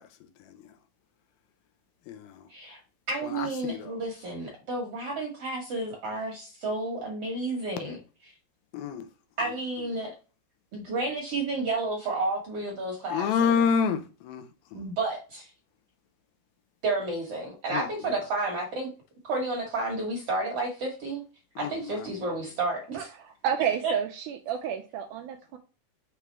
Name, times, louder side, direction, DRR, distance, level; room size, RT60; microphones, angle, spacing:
voice 1, 2.1-2.4 3.3-4.0 8.7-9.0 13.1-14.4 14.7-14.8 17.7-17.9 21.6-21.7, left 6 dB, 90° left, 2.4 m, -27 dB
voice 2, 3.1-8.3 9.4-10.1 10.7-13.6 14.7-15.5 16.8-18.9 19.2-21.2 21.6-23.0 23.8-23.9, right 2 dB, 60° right, 1.6 m, -31 dB
voice 3, 22.9-25.6, right 8 dB, 85° right, 1.8 m, -31 dB
6.2 x 3.4 x 4.4 m
omnidirectional pair, 4.2 m